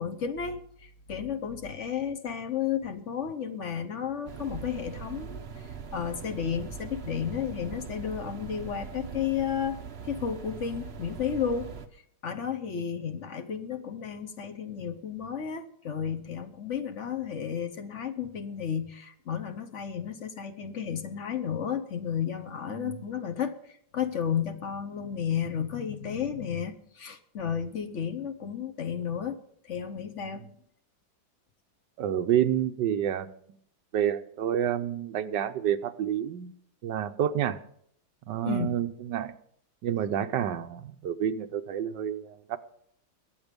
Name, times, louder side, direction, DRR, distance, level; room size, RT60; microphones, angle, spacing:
voice 1, 0.0-5.4 5.9-9.8 10.0-29.4 29.6-30.5 38.4-38.7, left 8 dB, 50° left, 9 dB, 1.0 m, -33 dB
sound 1, 4.3-11.9, right 6 dB, 45° right, 0.9 m, -41 dB
voice 2, 32.0-33.3 33.9-36.5 36.8-37.6 38.3-39.3 39.8-42.6, right 10 dB, 70° right, 9 dB, 1.4 m, -29 dB
21.5 x 8.1 x 5.2 m, 0.67 s
omnidirectional pair, 2.1 m